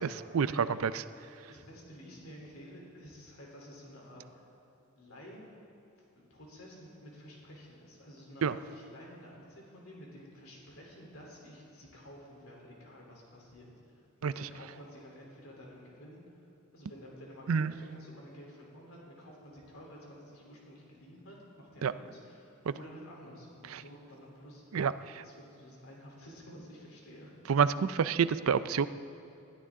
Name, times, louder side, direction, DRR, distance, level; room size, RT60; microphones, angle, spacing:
voice 1, 0.4-0.8 1.5-4.5 4.9-5.5 5.9-24.8 25.2-27.3, equal, 75° left, -2 dB, 3.5 m, -51 dB
voice 2, 24.7-25.2 27.5-28.9, right 6 dB, 75° right, 14 dB, 0.4 m, -27 dB
20.5 x 12.5 x 3.7 m, 2.7 s
head